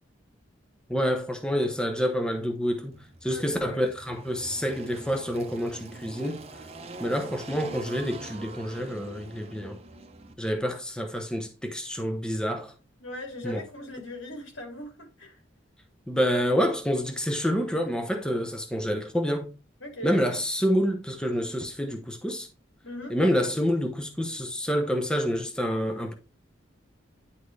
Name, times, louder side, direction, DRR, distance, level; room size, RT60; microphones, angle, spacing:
voice 1, 0.9-3.0 3.2-6.4 7.0-9.8 10.4-12.7 13.4-13.6 16.1-19.5 20.0-22.5 23.1-26.1, equal, 5° left, 0.7 m, -27 dB
Engine, 2.9-10.3, right 3 dB, 30° right, 0.8 m, -44 dB
voice 2, 3.2-3.9 13.0-15.4 18.3-18.4 19.8-20.1 22.8-23.1, left 1 dB, 80° left, 2.7 m, -40 dB
9.5 x 4.2 x 3.2 m
head